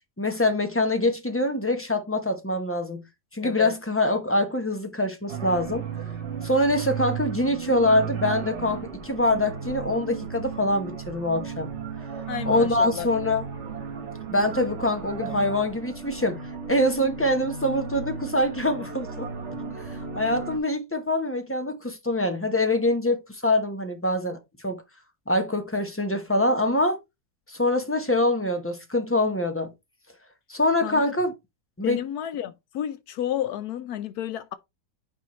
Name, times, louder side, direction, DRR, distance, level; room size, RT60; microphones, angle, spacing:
voice 1, 0.2-3.0 3.3-5.8 6.4-11.7 12.5-13.5 14.3-16.4 16.7-19.3 19.8-24.8 25.3-27.0 27.5-29.7 30.5-31.3 31.8-32.0, left 1 dB, 15° left, 0.5 m, -24 dB
voice 2, 3.4-3.7 12.3-13.1 30.8-31.1 31.8-34.5, left 11 dB, 70° left, 1.0 m, -31 dB
sound 1, 5.3-20.6, right 6 dB, 45° right, 1.2 m, -35 dB
9.0 x 4.6 x 3.1 m
omnidirectional pair, 1.9 m